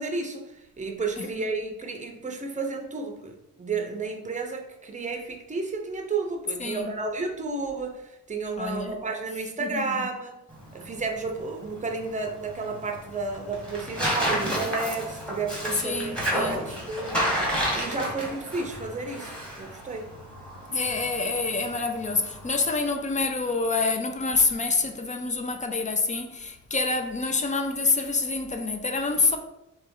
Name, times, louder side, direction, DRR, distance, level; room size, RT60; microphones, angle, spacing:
voice 1, 0.0-10.4 10.7-17.3 17.7-20.1, right 3 dB, 25° right, 0.7 m, -32 dB
voice 2, 1.2-1.5 6.6-7.0 8.6-9.0 9.6-10.0 15.8-16.6 20.7-29.4, left 3 dB, 25° left, 0.5 m, -27 dB
Tearing, 10.5-22.7, equal, 5° left, 1.3 m, -32 dB
3.4 x 3.0 x 4.7 m
cardioid pair, 115°, 30 cm